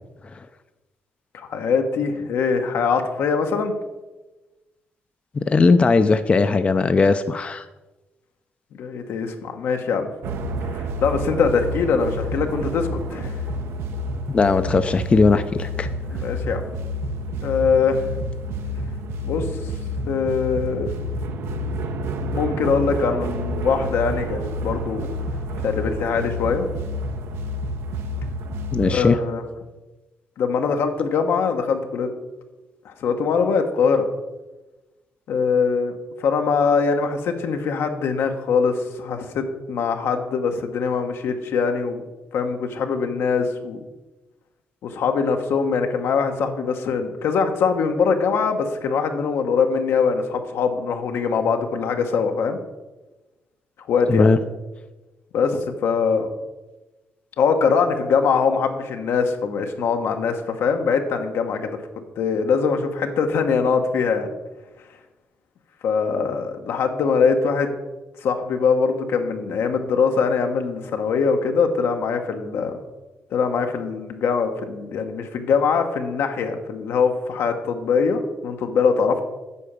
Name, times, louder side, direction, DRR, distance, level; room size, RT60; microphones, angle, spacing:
voice 1, 1.3-3.7 8.7-10.1 10.7-13.4 16.0-16.7 17.4-18.1 19.2-19.5 20.0-20.9 22.3-25.1 25.6-26.7 28.8-29.4 30.4-32.1 32.8-34.1 35.3-35.9 36.2-42.0 42.3-43.8 44.8-52.6 53.9-54.3 55.3-56.3 57.4-64.3 65.8-67.7 68.2-72.8 73.3-79.2, left 5 dB, 80° left, 5 dB, 1.1 m, -22 dB
voice 2, 5.3-7.7 14.3-15.9 28.7-29.2 54.1-54.4, left 4 dB, 30° left, 10 dB, 0.4 m, -18 dB
sound 1, 10.2-29.0, equal, 85° right, 0.8 m, -29 dB
8.4 x 4.9 x 6.8 m, 1.1 s
cardioid pair, 115°, 4 cm